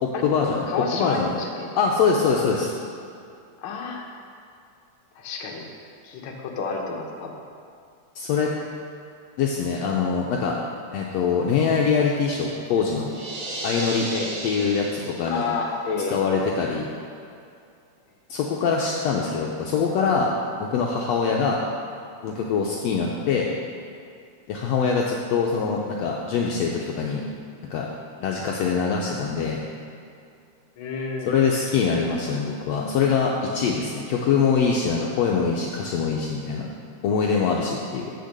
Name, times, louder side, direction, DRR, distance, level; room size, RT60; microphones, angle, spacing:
voice 1, 0.0-0.7 0.9-1.3 1.8-2.7 8.2-8.5 9.4-10.6 10.9-13.1 13.6-14.1 14.4-15.4 16.1-16.9 18.3-20.3 20.6-21.6 22.2-23.5 24.5-27.2 27.7-27.9 28.2-29.6 31.3-36.7 37.0-38.1, left 5 dB, 75° left, -1 dB, 1.7 m, -23 dB
voice 2, 0.7-1.7 3.6-4.0 5.1-5.6 6.0-7.3 14.1-14.3 15.3-16.2 30.8-31.3, left 4 dB, 60° left, 0 dB, 1.5 m, -30 dB
sound 1, 13.1-15.6, right 2 dB, 55° right, 2.1 m, -34 dB
8.1 x 6.6 x 6.6 m, 2.4 s
omnidirectional pair, 3.4 m